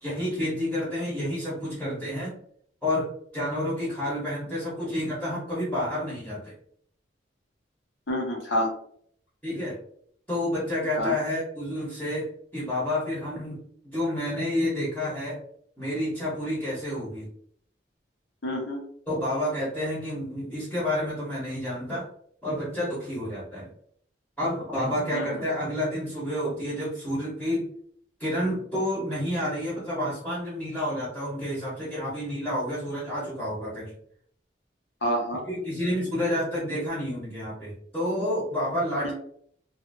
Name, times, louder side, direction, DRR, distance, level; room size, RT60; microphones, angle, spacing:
voice 1, 0.0-2.3 2.8-6.5 9.4-9.8 10.3-13.6 13.9-15.4 15.8-17.3 19.1-22.0 22.4-23.7 24.4-27.6 28.2-33.9 35.5-39.1, left 1 dB, 5° left, -8 dB, 1.0 m, -29 dB
voice 2, 8.1-8.7 11.0-11.2 18.4-18.8 25.1-25.4 35.0-35.4 39.0-39.1, equal, 75° left, 0 dB, 1.0 m, -28 dB
2.7 x 2.5 x 2.6 m, 0.64 s
head